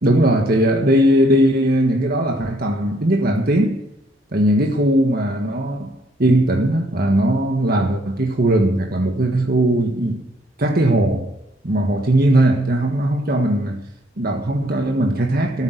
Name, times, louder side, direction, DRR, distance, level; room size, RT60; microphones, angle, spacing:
voice 1, 0.0-3.8 4.3-5.9 6.2-10.2 10.6-11.3 11.6-13.8 14.2-15.6, right 1 dB, 55° right, 1.6 m, -18 dB
15.5 x 9.0 x 8.1 m
head